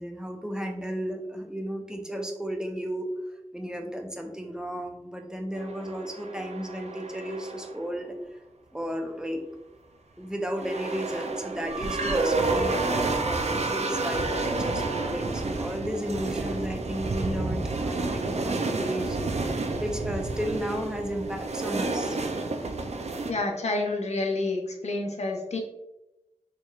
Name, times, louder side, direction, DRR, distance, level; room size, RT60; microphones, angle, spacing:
voice 1, 0.0-3.1 3.5-8.2 8.7-9.4 10.2-22.2, equal, 5° right, 3 dB, 0.6 m, -33 dB
sound 1, 5.6-7.9 10.5-23.3, right 3 dB, 65° right, 0.4 m, -30 dB
voice 2, 23.3-25.6, left 2 dB, 65° left, 1 dB, 0.6 m, -29 dB
4.4 x 3.1 x 2.4 m, 0.93 s
wide cardioid pair, 65°, 12 cm